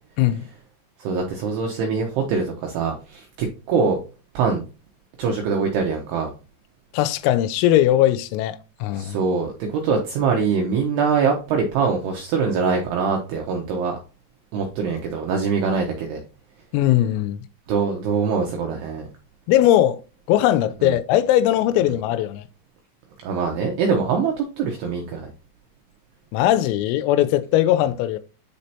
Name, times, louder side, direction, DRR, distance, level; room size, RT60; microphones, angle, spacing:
voice 1, 1.0-4.0 4.3-4.6 5.2-6.3 8.9-14.0 14.5-16.2 17.7-19.1 20.8-21.0 23.2-25.3, right 5 dB, 90° right, 2.3 m, -23 dB
voice 2, 6.9-9.2 16.7-17.4 19.5-20.0 20.3-22.4 26.3-28.2, left 13 dB, 85° left, 3.2 m, -19 dB
10.0 x 4.2 x 2.8 m
omnidirectional pair, 6.0 m